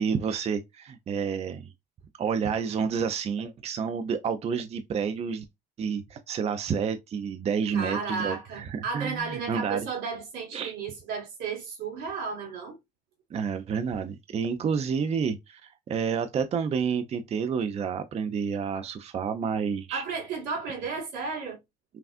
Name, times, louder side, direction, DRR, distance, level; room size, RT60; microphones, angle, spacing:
voice 1, 0.0-1.6 2.2-5.4 5.8-9.9 10.5-10.7 13.3-20.0, right 6 dB, 40° right, 0.5 m, -29 dB
voice 2, 7.7-12.8 19.9-21.6, right 5 dB, 85° right, 1.9 m, -33 dB
5.7 x 2.4 x 2.5 m
cardioid pair, 110°, 17 cm